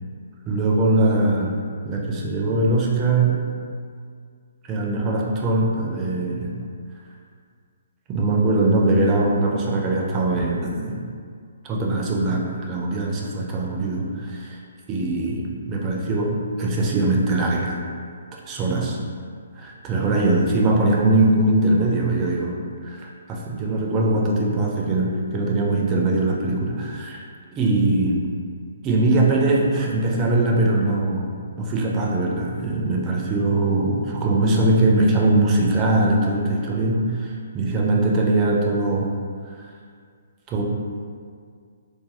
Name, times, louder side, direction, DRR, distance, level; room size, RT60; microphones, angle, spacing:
voice 1, 0.5-1.6 1.8-3.5 4.6-6.5 8.1-11.0 11.6-14.6 14.9-17.8 18.5-19.0 19.6-27.2 27.5-28.2 28.8-39.1 39.5-39.7 40.5-40.6, right 2 dB, 20° right, -2 dB, 0.4 m, -21 dB
2.4 x 2.2 x 3.2 m, 2.1 s
figure-of-eight pair, 130°, 0 cm